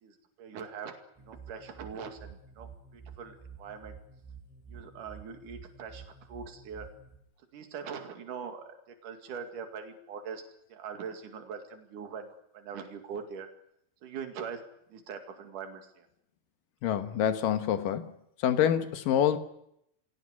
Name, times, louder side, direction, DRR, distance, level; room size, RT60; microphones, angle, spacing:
voice 1, 0.0-4.0 4.7-6.9 7.5-10.4 10.7-13.5 14.0-14.6 14.9-16.1, right 6 dB, 60° right, 5 dB, 3.7 m, -42 dB
sound 1, 1.2-7.2, right 6 dB, ahead, 4.9 m, -50 dB
voice 2, 16.8-18.1 18.4-19.4, left 9 dB, 70° left, 9 dB, 2.8 m, -26 dB
23.0 x 17.5 x 9.7 m, 0.80 s
omnidirectional pair, 4.2 m